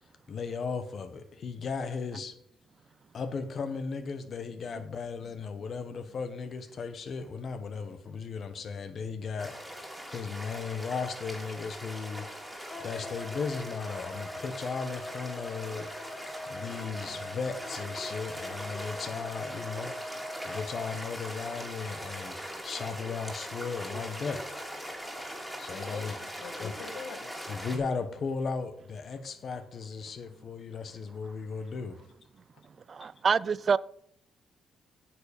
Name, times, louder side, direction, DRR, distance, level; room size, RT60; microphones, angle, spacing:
voice 1, 0.3-2.4 3.1-12.3 12.5-16.2 16.5-20.0 20.4-22.4 22.6-24.5 25.6-26.1 26.6-26.7 27.5-32.0 33.0-33.1, left 5 dB, 50° left, 1.3 m, -36 dB
sound 1, 9.4-27.8, equal, ahead, 2.8 m, -41 dB
Wind instrument woodwind instrument, 12.7-20.9, left 1 dB, 15° left, 1.7 m, -43 dB
voice 2, 25.6-27.3, left 5 dB, 80° left, 1.5 m, -44 dB
voice 3, 32.9-33.8, right 6 dB, 45° right, 0.3 m, -26 dB
9.3 x 7.2 x 5.3 m
cardioid pair, 90°, 0 cm